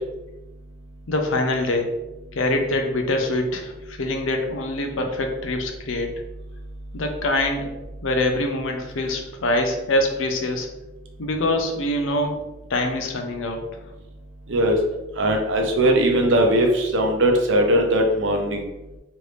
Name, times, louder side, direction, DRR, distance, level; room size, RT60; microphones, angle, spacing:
voice 1, 1.1-1.9 2.3-6.1 6.9-7.7 8.0-10.7 11.2-12.4 12.7-13.8, left 1 dB, 80° left, 4 dB, 0.6 m, -24 dB
voice 2, 15.2-18.6, right 1 dB, 70° right, 2 dB, 0.6 m, -19 dB
3.2 x 2.6 x 3.2 m, 1.0 s
head